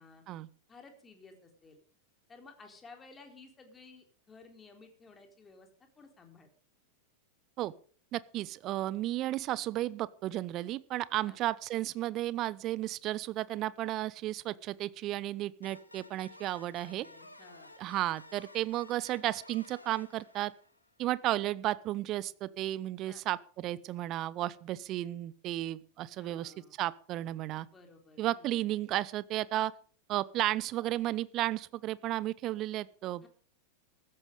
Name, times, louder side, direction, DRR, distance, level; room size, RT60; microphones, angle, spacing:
voice 1, 0.7-1.8 2.3-5.7 6.0-6.5 11.2-11.4 16.8-17.7 23.0-23.2 26.1-26.7 27.7-28.5 33.2-33.3, left 4 dB, 15° left, 4 dB, 4.1 m, -55 dB
voice 2, 8.1-17.1 17.8-20.5 21.0-27.7 28.2-29.7 30.1-33.3, right 14 dB, 35° right, 20 dB, 0.8 m, -33 dB
sound 1, 15.6-21.0, left 2 dB, 85° left, 1.9 m, -54 dB
15.5 x 13.5 x 5.1 m, 0.44 s
figure-of-eight pair, 90°, 0 cm